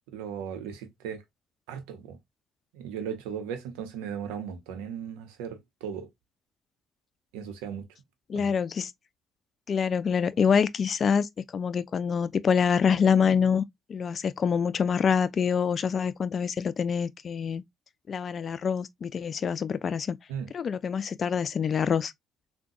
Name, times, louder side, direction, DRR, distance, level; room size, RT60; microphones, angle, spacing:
voice 1, 0.1-1.2 1.7-2.2 2.7-6.1 7.3-7.8 8.3-8.5 20.3-20.5, right 8 dB, 85° right, 0.7 m, -37 dB
voice 2, 8.3-8.9 9.7-13.6 13.9-17.6 18.1-20.2 20.5-22.1, left 6 dB, 45° left, 0.4 m, -26 dB
3.7 x 2.2 x 2.6 m
hypercardioid pair, 65°, 0 cm